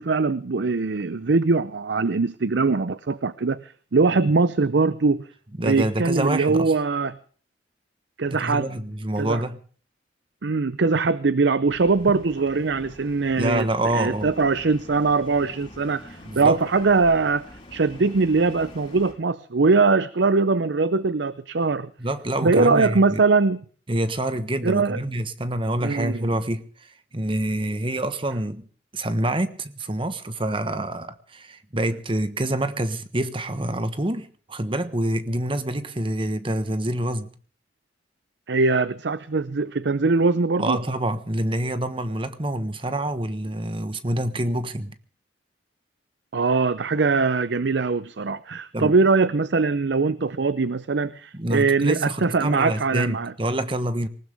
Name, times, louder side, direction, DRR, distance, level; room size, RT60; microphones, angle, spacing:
voice 1, 0.0-5.2 5.6-7.2 8.2-8.7 9.2-9.4 10.4-13.7 13.9-17.4 17.7-21.9 22.4-23.6 24.6-25.0 25.8-26.3 38.5-40.8 46.3-53.3, right 4 dB, 70° right, 0.6 m, -22 dB
voice 2, 5.6-6.7 8.3-9.6 13.4-14.3 16.2-16.6 22.0-23.2 23.9-28.7 28.9-37.3 40.6-44.9 48.7-48.9 51.3-54.1, right 1 dB, 30° right, 1.3 m, -27 dB
sound 1, 11.7-19.1, left 1 dB, 30° left, 4.3 m, -45 dB
19.5 x 19.0 x 3.5 m
head